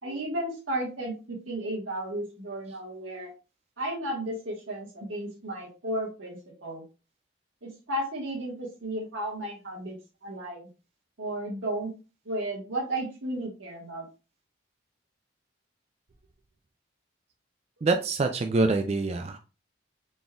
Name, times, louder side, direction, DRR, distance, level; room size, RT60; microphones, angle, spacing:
voice 1, 0.0-3.3 3.8-6.8 7.6-10.0 10.2-10.7 11.2-11.9 12.2-14.1, right 1 dB, 90° right, -1 dB, 1.5 m, -33 dB
voice 2, 17.8-19.4, right 3 dB, 35° right, 5 dB, 0.3 m, -25 dB
4.1 x 3.6 x 2.3 m, 0.32 s
head